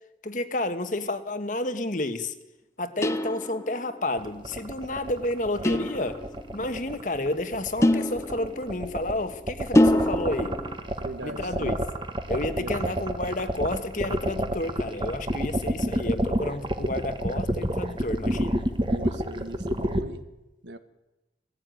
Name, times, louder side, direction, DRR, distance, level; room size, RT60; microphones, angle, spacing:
voice 1, 0.2-2.3 2.8-6.2 6.5-10.6 11.2-11.8 12.3-18.6, left 2 dB, 45° left, 1.3 m, -30 dB
sound 1, 3.0-3.9 5.6-6.5 7.8-8.9 9.7-10.8, left 1 dB, 15° left, 0.7 m, -24 dB
sound 2, 4.2-20.0, right 1 dB, 25° right, 1.4 m, -28 dB
voice 2, 11.0-11.8 12.5-12.7 18.8-20.2 20.6-20.8, right 1 dB, 85° right, 1.5 m, -39 dB
18.5 x 15.5 x 9.2 m
head